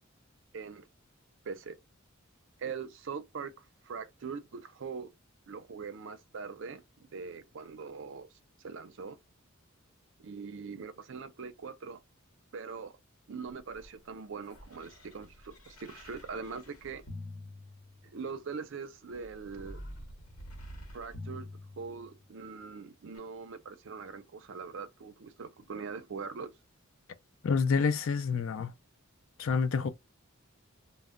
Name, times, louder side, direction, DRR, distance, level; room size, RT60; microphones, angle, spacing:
voice 1, 0.5-0.9 1.5-1.8 2.6-3.5 3.8-5.1 5.5-8.3 8.6-9.2 10.2-12.0 12.5-13.0 13.3-17.1 18.0-19.8 20.9-21.5 21.8-26.5, right 5 dB, 60° right, 0.5 m, -42 dB
sound 1, 13.4-18.3 19.1-22.4 23.1-23.2, left 1 dB, 90° left, 0.9 m, -48 dB
voice 2, 27.4-28.7 29.4-29.9, left 5 dB, 65° left, 0.4 m, -28 dB
2.1 x 2.0 x 3.5 m
head